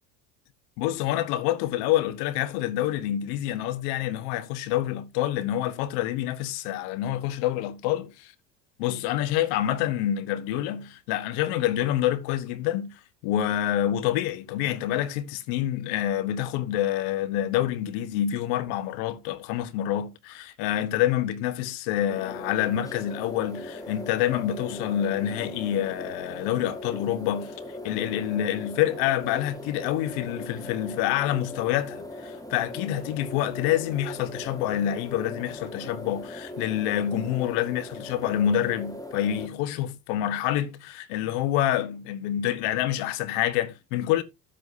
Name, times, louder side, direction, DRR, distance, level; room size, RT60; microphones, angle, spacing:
voice 1, 0.8-8.3 8.8-27.6 27.8-44.2, left 12 dB, 65° left, 1.3 m, -27 dB
sound 1, 22.1-39.5, left 1 dB, 5° left, 1.7 m, -39 dB
13.0 x 7.6 x 2.7 m
hypercardioid pair, 70°, 48 cm